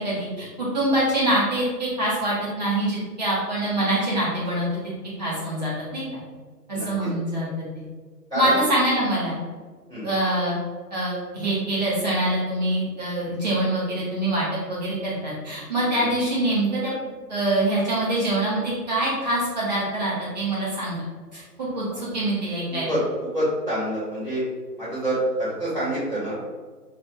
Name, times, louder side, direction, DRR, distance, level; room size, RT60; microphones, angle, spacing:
voice 1, 0.0-4.7 5.2-6.0 6.7-7.5 7.7-7.8 8.3-9.4 10.0-10.5 10.9-16.9 17.3-21.0 21.3-22.9, right 1 dB, 25° right, -8 dB, 1.0 m, -24 dB
voice 2, 6.7-7.1 8.3-8.5 9.9-10.1 15.9-16.1 21.9-22.0 22.7-24.4 24.8-26.3, right 1 dB, 5° left, -25 dB, 0.7 m, -27 dB
5.4 x 2.7 x 2.4 m, 1.5 s
figure-of-eight pair, 150°, 50 cm